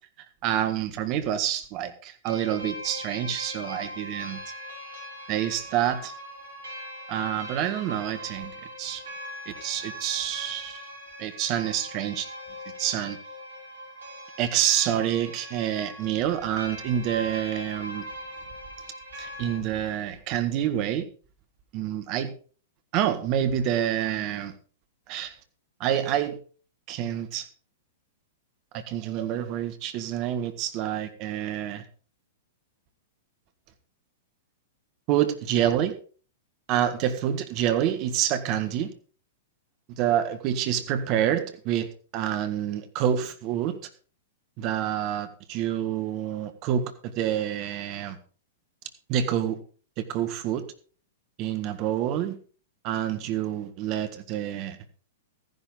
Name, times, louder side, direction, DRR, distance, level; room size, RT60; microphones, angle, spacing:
voice 1, 0.4-4.4 5.3-6.1 7.1-9.0 9.4-10.8 11.2-12.3 12.8-13.2 14.4-18.1 19.1-21.1 21.7-22.3 22.9-24.5 25.1-25.3 25.8-26.4 26.9-27.5 28.7-31.8 35.1-36.0 36.7-38.9 39.9-43.8 44.6-48.2 49.1-49.6 50.0-50.7 51.4-52.4 52.8-54.8, right 10 dB, 40° right, 10 dB, 1.6 m, -27 dB
sound 1, 2.3-19.6, equal, 75° right, 5.7 m, -40 dB
14.5 x 10.5 x 3.9 m, 0.40 s
figure-of-eight pair, 105°, 0 cm